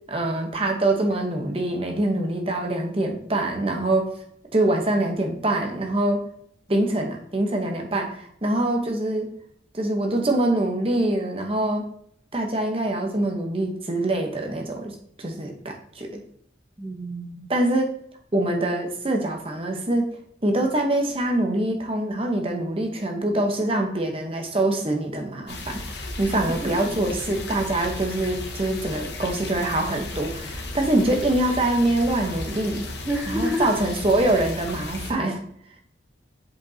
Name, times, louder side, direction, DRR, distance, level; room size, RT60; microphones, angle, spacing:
voice 1, 0.1-4.1 4.5-6.2 6.7-9.3 9.7-11.9 12.3-16.2 17.5-17.9 18.3-20.1 20.4-32.8 33.3-35.4, right 1 dB, 30° right, 3 dB, 0.9 m, -24 dB
voice 2, 16.8-17.5 26.6-26.9 33.1-33.7, equal, 15° right, 0 dB, 0.5 m, -29 dB
sound 1, 25.5-35.1, left 2 dB, 65° left, 1.1 m, -35 dB
7.7 x 5.1 x 2.8 m, 0.67 s
head